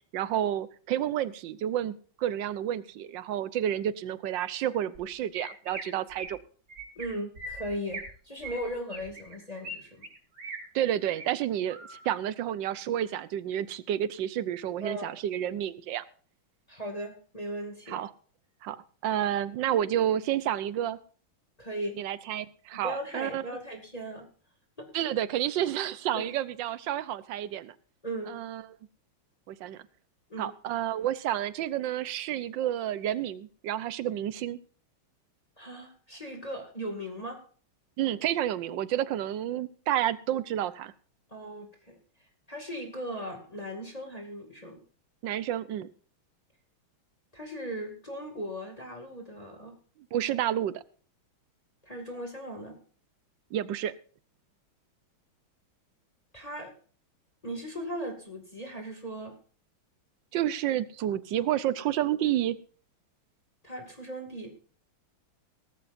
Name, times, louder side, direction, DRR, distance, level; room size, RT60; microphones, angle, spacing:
voice 1, 0.1-6.4 10.7-16.0 17.9-18.1 18.6-21.0 22.0-23.4 24.9-27.7 28.3-28.6 29.5-29.8 30.4-34.6 38.0-40.9 45.2-45.9 50.1-50.8 53.5-53.9 60.3-62.6, right 11 dB, 70° right, 16 dB, 1.4 m, -30 dB
Chirp tweet, 4.9-5.0 5.3-5.8 6.1-6.4 6.7-7.1 7.4-8.1 8.4-9.8 10.0-10.6 11.0-11.3 11.7-12.1, right 2 dB, 50° right, 4.8 m, -40 dB
voice 2, 7.0-10.0 14.8-15.1 16.7-18.0 21.6-22.0 22.7-24.3 24.8-24.9 26.1-26.3 28.0-28.4 30.3-30.5 35.6-37.4 41.3-42.0 42.5-44.8 47.3-49.7 51.8-52.8 56.3-56.7 57.4-59.3 63.6-64.5, equal, 20° left, 2 dB, 2.3 m, -38 dB
18.0 x 13.5 x 2.6 m, 0.42 s
omnidirectional pair, 2.3 m